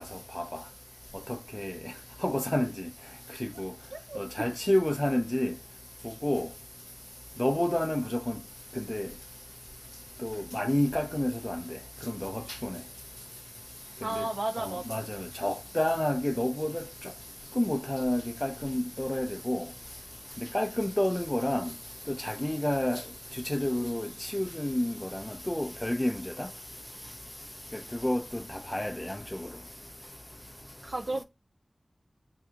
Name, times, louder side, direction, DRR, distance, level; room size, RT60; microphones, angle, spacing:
voice 1, 2.2-2.7 3.6-3.7 4.4-5.5 6.2-6.5 7.4-8.3 8.9-9.1 10.2-11.6 12.2-12.3 14.2-14.3 14.9-15.0 15.4-16.7 17.6-19.6 20.5-21.7 22.2-23.0 23.5-24.1 24.3-24.9 25.5-26.1 28.0-28.2 28.7-28.9, left 1 dB, 15° left, 0.5 m, -28 dB
voice 2, 3.9-4.5 14.0-15.0 30.8-31.2, right 2 dB, 60° right, 0.4 m, -34 dB
2.7 x 2.3 x 3.7 m
wide cardioid pair, 45°, 0 cm